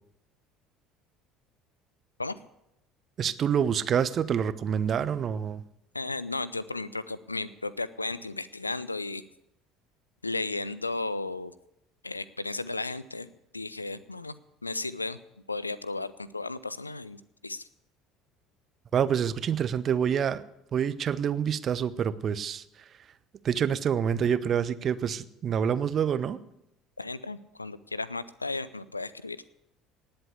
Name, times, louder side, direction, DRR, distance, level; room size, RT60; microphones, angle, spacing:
voice 1, 3.2-5.6 18.9-20.4 20.7-22.6 23.4-26.4, right 8 dB, 40° right, 16 dB, 0.8 m, -27 dB
voice 2, 5.9-9.2 10.2-11.5 12.0-14.3 14.6-15.2 15.5-17.6 27.0-29.4, left 3 dB, 85° left, 18 dB, 0.5 m, -34 dB
19.0 x 7.9 x 8.3 m, 0.83 s
figure-of-eight pair, 60°, 0 cm